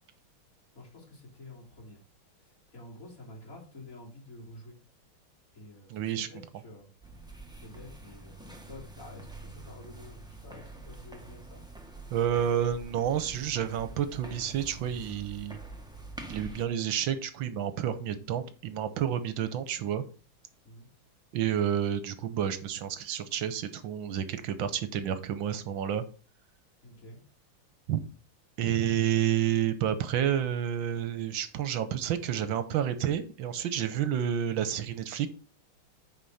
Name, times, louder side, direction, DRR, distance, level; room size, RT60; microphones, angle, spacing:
voice 1, 0.7-2.0 2.4-4.8 5.5-6.9 7.6-11.6 20.6-20.9 26.8-27.2, left 2 dB, 40° left, -4 dB, 3.8 m, -49 dB
voice 2, 5.9-6.3 12.1-15.6 16.3-20.0 21.3-26.0 27.9-28.0 28.6-35.3, right 10 dB, 70° right, 12 dB, 1.6 m, -30 dB
sound 1, 7.0-16.7, right 2 dB, 5° right, 0.7 m, -46 dB
9.3 x 5.0 x 4.1 m, 0.38 s
omnidirectional pair, 2.3 m